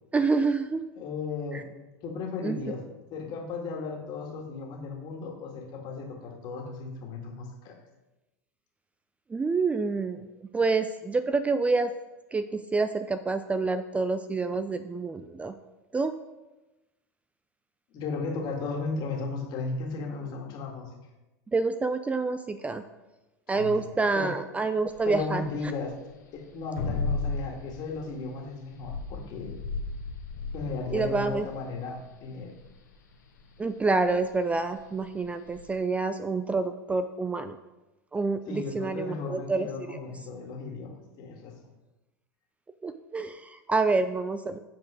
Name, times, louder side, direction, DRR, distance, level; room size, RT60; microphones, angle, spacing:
voice 1, 0.1-0.8 1.5-1.6 2.4-2.6 9.3-11.9 12.3-15.5 15.9-16.1 21.5-22.8 23.5-25.4 30.9-31.5 33.6-37.6 38.1-40.0 42.8-44.6, right 3 dB, 15° right, 10 dB, 0.4 m, -27 dB
voice 2, 1.0-1.6 2.0-2.8 3.1-7.8 17.9-20.9 23.5-24.3 25.1-25.9 26.3-29.5 30.5-32.5 38.5-41.5, left 4 dB, 50° left, 1 dB, 1.9 m, -35 dB
sound 1, 24.9-35.7, left 3 dB, 90° left, 1.5 m, -36 dB
8.2 x 4.4 x 4.9 m, 1.1 s
hypercardioid pair, 100°, 9 cm